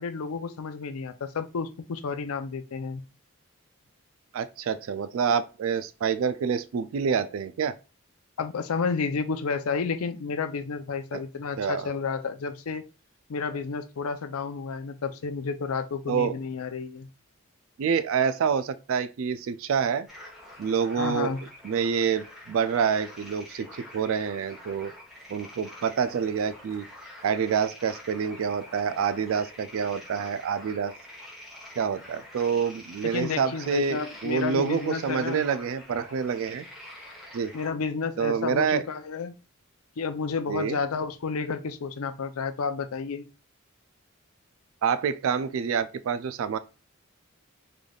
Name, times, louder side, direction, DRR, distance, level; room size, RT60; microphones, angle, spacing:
voice 1, 0.0-3.0 8.4-12.8 13.3-17.1 21.0-21.4 33.0-35.4 37.5-39.3 40.0-43.3, left 5 dB, 90° left, 0.5 m, -31 dB
voice 2, 4.3-7.8 11.1-11.2 11.6-11.9 16.1-16.4 17.8-20.1 20.6-21.3 21.6-24.9 25.3-26.8 27.2-30.9 31.8-36.7 37.3-37.5 38.2-38.8 40.5-40.8 44.8-46.6, right 6 dB, 70° right, 0.3 m, -27 dB
sound 1, 20.1-37.7, left 1 dB, ahead, 1.0 m, -46 dB
3.9 x 3.3 x 2.3 m
head